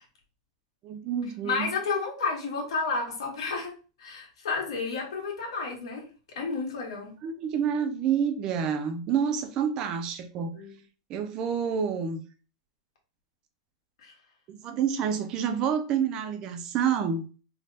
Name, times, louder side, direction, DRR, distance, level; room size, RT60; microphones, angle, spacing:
voice 1, 0.8-1.7 7.2-10.5 11.1-12.2 14.5-17.3, right 7 dB, 25° right, 0.3 m, -28 dB
voice 2, 1.4-3.7 4.0-6.1 6.3-7.1 10.5-10.7 14.0-14.1, left 4 dB, 90° left, 1.5 m, -31 dB
3.4 x 2.1 x 3.9 m
supercardioid pair, 175°, 3 cm